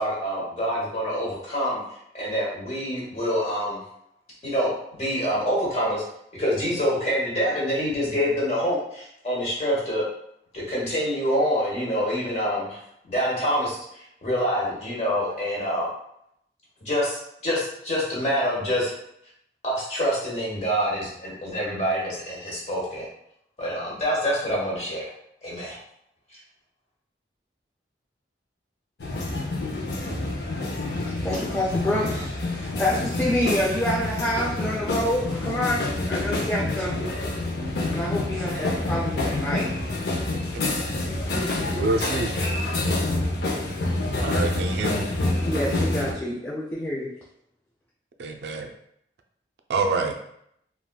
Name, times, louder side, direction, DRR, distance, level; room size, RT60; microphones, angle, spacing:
voice 1, 0.0-1.8 2.1-3.8 4.4-4.7 5.0-6.0 6.3-10.0 10.5-12.8 13.1-13.8 14.2-15.9 16.8-17.1 17.4-18.9 19.6-23.0 23.6-25.1 25.4-25.8, equal, 35° left, -5 dB, 1.0 m, -26 dB
sound 1, 29.0-46.1, left 2 dB, 65° left, 0.6 m, -27 dB
voice 2, 31.0-37.1 37.9-39.9 41.2-41.8 42.3-42.8 45.4-47.1, left 1 dB, 10° left, -5 dB, 0.3 m, -28 dB
voice 3, 41.7-42.4 44.2-45.0 48.2-48.7 49.7-50.2, right 3 dB, 75° right, 4 dB, 0.3 m, -26 dB
3.5 x 2.3 x 2.2 m, 0.75 s
head